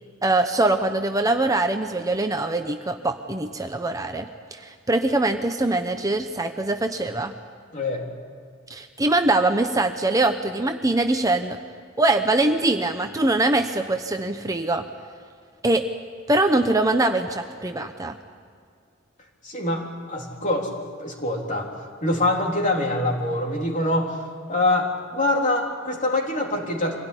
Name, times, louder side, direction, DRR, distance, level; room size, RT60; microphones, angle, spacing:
voice 1, 0.2-7.3 8.7-11.6 12.0-14.8 15.6-15.9 16.3-18.2, right 2 dB, 15° right, 6 dB, 0.9 m, -23 dB
voice 2, 7.7-8.0 19.4-20.7 21.0-21.7 22.0-24.2 24.5-27.0, left 2 dB, 40° left, 0 dB, 3.7 m, -24 dB
24.5 x 17.0 x 9.9 m, 2.2 s
head